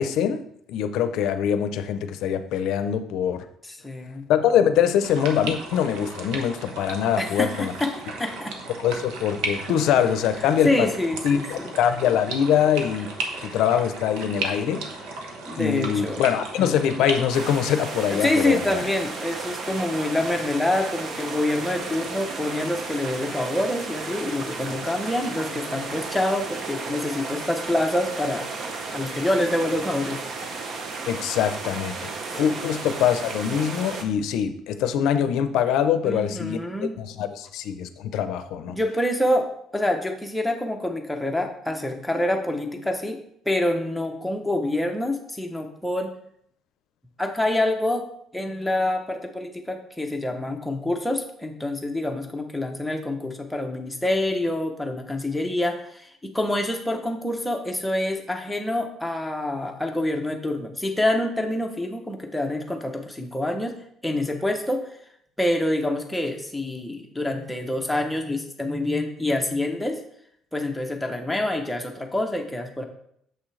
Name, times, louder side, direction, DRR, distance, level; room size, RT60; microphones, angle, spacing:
voice 1, 0.0-3.4 4.3-7.7 8.8-10.9 11.2-13.1 13.4-14.9 15.6-18.9 31.1-36.6 37.0-38.8, left 9 dB, 65° left, 10 dB, 0.6 m, -23 dB
voice 2, 3.6-4.3 7.2-7.9 8.2-8.6 10.6-11.7 15.5-16.2 18.1-28.5 28.9-30.2 32.4-32.5 36.0-37.0 38.7-43.2 43.5-46.1 47.2-48.1 48.3-63.8 64.0-64.9 65.4-70.0 70.5-72.8, left 1 dB, 5° left, 3 dB, 0.7 m, -26 dB
sound 1, 5.0-17.5, right 3 dB, 80° right, 1.2 m, -35 dB
sound 2, 17.3-34.0, right 4 dB, 40° right, 0.8 m, -34 dB
6.9 x 6.1 x 3.2 m, 0.69 s
cardioid pair, 175°, 0 cm